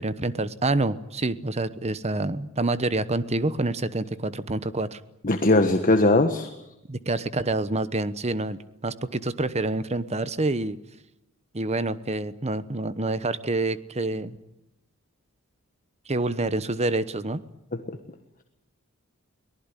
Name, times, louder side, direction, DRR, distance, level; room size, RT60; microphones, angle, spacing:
voice 1, 0.0-5.0 6.9-10.8 11.5-14.4 16.1-17.4, right 2 dB, 30° right, 15 dB, 1.1 m, -27 dB
voice 2, 5.2-6.5 17.9-18.0, left 2 dB, 40° left, 7 dB, 1.5 m, -20 dB
23.5 x 19.0 x 9.9 m, 0.88 s
head